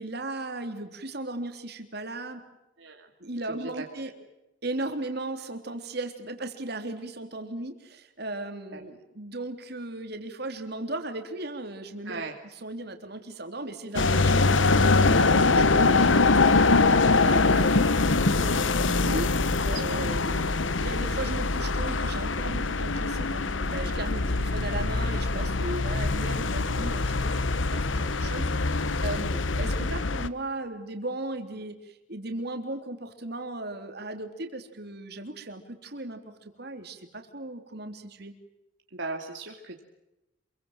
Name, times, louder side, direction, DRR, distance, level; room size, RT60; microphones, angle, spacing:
voice 1, 0.0-2.4 3.2-4.1 4.6-12.2 12.6-38.3, right 2 dB, 55° right, 6 dB, 3.5 m, -37 dB
voice 2, 2.8-3.1 3.5-4.2 8.7-8.8 12.0-12.4 17.1-17.5 19.7-19.8 38.9-39.8, right 3 dB, 70° right, 2 dB, 2.6 m, -39 dB
sound 1, 13.9-30.3, left 3 dB, 80° left, 1.1 m, -23 dB
28.0 x 23.5 x 7.5 m, 0.95 s
head